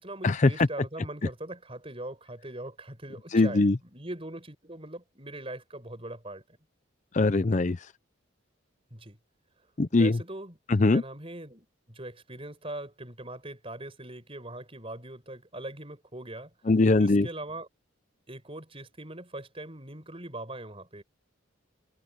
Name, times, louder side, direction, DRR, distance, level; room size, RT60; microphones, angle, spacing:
voice 1, 0.0-6.4 8.9-9.2 9.9-10.6 10.9-16.5 17.0-17.7 18.3-21.0, right 1 dB, 30° right, 5.5 m, -41 dB
voice 2, 3.3-3.8 7.1-7.8 9.8-10.2 10.7-11.0 16.7-17.3, left 3 dB, 35° left, 0.5 m, -21 dB
head